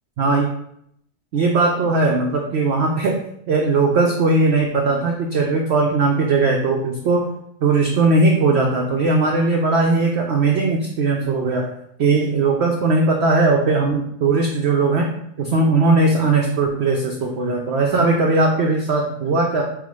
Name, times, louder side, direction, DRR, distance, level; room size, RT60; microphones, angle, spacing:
voice 1, 0.2-0.5 1.3-3.2 3.5-7.3 7.6-11.7 12.0-15.1 15.4-19.6, right 3 dB, 85° right, 1 dB, 0.5 m, -18 dB
4.6 x 2.1 x 4.7 m, 0.72 s
omnidirectional pair, 1.7 m